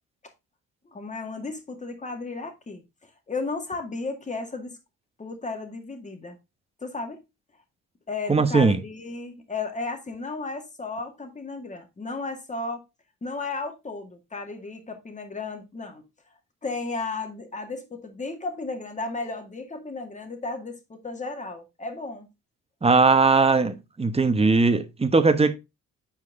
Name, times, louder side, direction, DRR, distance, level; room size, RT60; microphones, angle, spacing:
voice 1, 0.8-4.8 5.2-6.4 6.8-7.2 8.1-12.8 13.2-16.0 16.6-22.3, left 3 dB, 25° left, 2.0 m, -34 dB
voice 2, 8.3-8.8 22.8-25.5, right 4 dB, 20° right, 1.1 m, -19 dB
8.7 x 4.7 x 3.6 m
cardioid pair, 90°, 30 cm